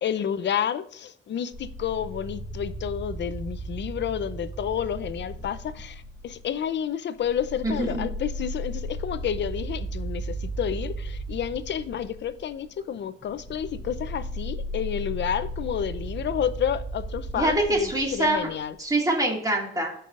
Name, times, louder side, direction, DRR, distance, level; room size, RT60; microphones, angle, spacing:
voice 1, 0.0-18.7, left 9 dB, 60° left, 0.6 m, -30 dB
sound 1, 1.5-6.7 7.2-18.7, right 1 dB, 35° right, 2.4 m, -35 dB
voice 2, 7.6-8.1 17.4-18.5 18.8-19.9, right 1 dB, 15° right, 2.1 m, -25 dB
13.5 x 5.5 x 2.5 m
wide cardioid pair, 145°, 21 cm